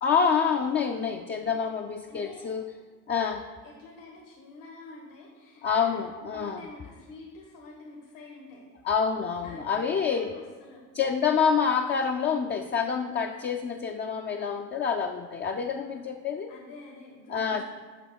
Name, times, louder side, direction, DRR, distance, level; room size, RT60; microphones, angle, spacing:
voice 1, 0.0-2.6 3.1-3.4 5.6-6.6 8.8-10.3 10.9-16.5 17.3-17.6, left 6 dB, 25° left, 3 dB, 0.4 m, -27 dB
voice 2, 2.1-2.5 3.6-6.0 6.2-8.7 9.4-10.8 15.8-16.0 16.5-17.6, left 3 dB, 75° left, -2 dB, 1.7 m, -47 dB
5.6 x 5.5 x 6.0 m, 1.4 s
supercardioid pair, 75°, 47 cm